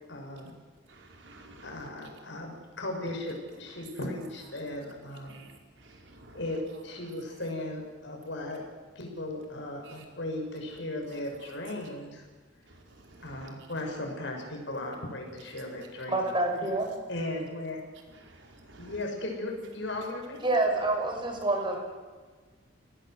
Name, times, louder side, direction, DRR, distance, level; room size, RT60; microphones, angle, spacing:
voice 1, 0.1-0.5 1.6-5.4 6.3-8.6 8.9-12.2 13.2-16.3 17.1-17.8 18.8-20.4, left 1 dB, 70° left, 1 dB, 6.4 m, -37 dB
voice 2, 0.9-1.9 5.3-5.5 5.8-6.4 9.9-10.0 13.1-13.5 18.2-18.9, right 2 dB, 75° right, 1 dB, 5.2 m, -52 dB
voice 3, 16.1-16.9 20.4-21.8, right 2 dB, 25° right, 3 dB, 6.0 m, -27 dB
28.5 x 19.0 x 8.0 m, 1.4 s
head